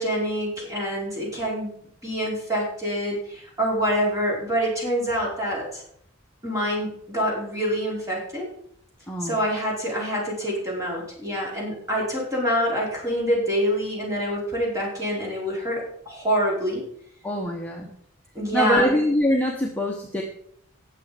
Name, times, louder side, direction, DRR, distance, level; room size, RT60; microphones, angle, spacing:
voice 1, 0.0-1.7 2.0-5.8 6.4-8.5 9.2-16.8 17.8-17.9 18.3-18.9, equal, 15° right, -4 dB, 4.9 m, -26 dB
voice 2, 9.1-9.4 17.2-17.9 18.5-20.2, equal, 5° left, -1 dB, 1.1 m, -23 dB
18.5 x 7.1 x 5.2 m, 0.69 s
head